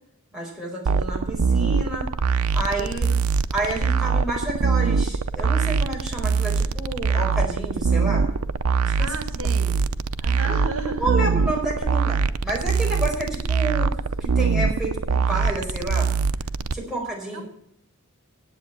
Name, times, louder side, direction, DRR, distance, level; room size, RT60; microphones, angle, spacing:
voice 1, 0.3-2.1 2.5-3.1 3.5-8.3 8.8-9.1 9.6-9.7 10.4-10.6 11.0-16.1 16.7-17.4, right 2 dB, ahead, -3 dB, 4.7 m, -29 dB
sound 1, 0.9-16.7, right 5 dB, 90° right, 0.6 m, -23 dB
voice 2, 2.9-3.2 9.0-9.7 10.2-11.3 16.9-17.1 17.3-17.4, right 3 dB, 70° right, 6 dB, 1.8 m, -34 dB
10.0 x 8.2 x 7.6 m, 0.72 s
head